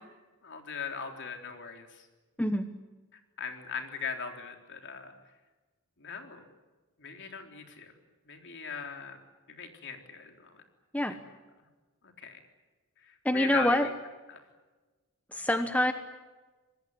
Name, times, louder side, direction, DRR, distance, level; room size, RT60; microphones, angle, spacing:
voice 1, 0.4-2.1 3.1-5.1 6.0-6.5 7.0-7.9 8.3-9.2 9.5-10.6 11.1-11.2 12.0-12.4 13.1-13.9 14.3-14.4, left 5 dB, 55° left, 4 dB, 3.8 m, -39 dB
voice 2, 13.2-13.9 15.3-15.9, left 1 dB, 5° left, 8 dB, 1.1 m, -26 dB
26.0 x 21.0 x 9.6 m, 1.2 s
head